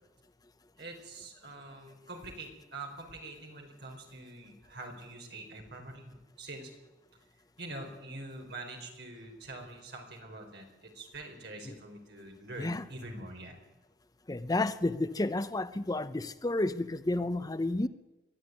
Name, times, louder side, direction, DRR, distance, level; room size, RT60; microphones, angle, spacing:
voice 1, 0.8-6.7 7.6-13.6, right 2 dB, 65° right, 4.8 m, -45 dB
voice 2, 14.3-17.9, left 2 dB, 20° left, 0.6 m, -31 dB
23.0 x 13.5 x 9.5 m
head